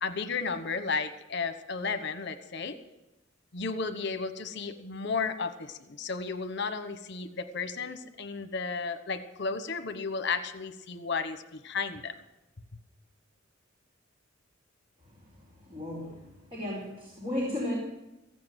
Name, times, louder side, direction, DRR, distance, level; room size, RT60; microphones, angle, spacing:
voice 1, 0.0-2.7 3.5-12.2, left 4 dB, 60° left, 9 dB, 1.1 m, -33 dB
voice 2, 15.6-17.7, left 1 dB, 30° right, -4 dB, 4.4 m, -35 dB
15.5 x 8.6 x 9.2 m, 0.95 s
head